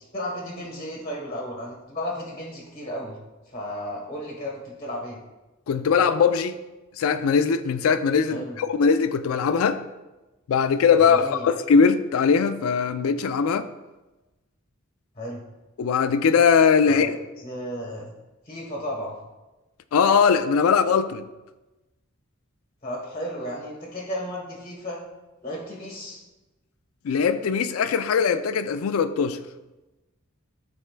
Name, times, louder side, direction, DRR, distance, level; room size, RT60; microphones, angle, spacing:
voice 1, 0.1-3.2 3.5-5.2 8.3-8.6 11.0-11.5 15.2-15.4 16.9-17.1 17.4-18.1 18.5-19.2 22.8-25.0 25.4-26.2, equal, 25° left, 1.1 m, -34 dB
voice 2, 5.7-6.6 7.0-9.8 10.5-13.7 15.8-17.2 19.9-21.2 27.0-29.4, left 6 dB, 80° left, 0.4 m, -20 dB
12.0 x 4.3 x 2.2 m
head